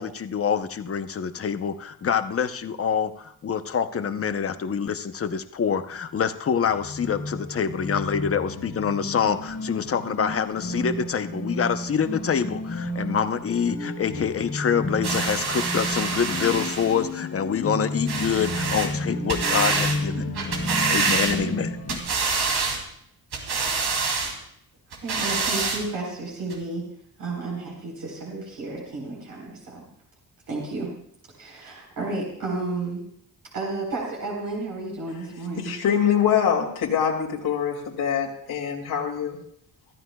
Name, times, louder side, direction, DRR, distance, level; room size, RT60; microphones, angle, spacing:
voice 1, 0.0-20.2 20.9-21.8, left 7 dB, 40° left, 9 dB, 0.8 m, -26 dB
sound 1, 6.6-22.0, left 1 dB, 60° left, 2.6 m, -32 dB
sound 2, 15.0-17.0 18.1-18.9 19.3-20.0 20.4-21.6 21.9-22.8 23.3-24.3 24.9-25.8 26.5-26.6, right 4 dB, 90° right, 3.0 m, -26 dB
voice 2, 24.9-26.8 27.2-29.9 30.5-30.9 31.4-33.0 33.5-35.8, right 3 dB, 65° right, -2 dB, 4.2 m, -32 dB
voice 3, 35.6-39.4, left 8 dB, 80° left, -2 dB, 2.5 m, -24 dB
24.5 x 13.5 x 2.3 m, 0.70 s
wide cardioid pair, 140°, 37 cm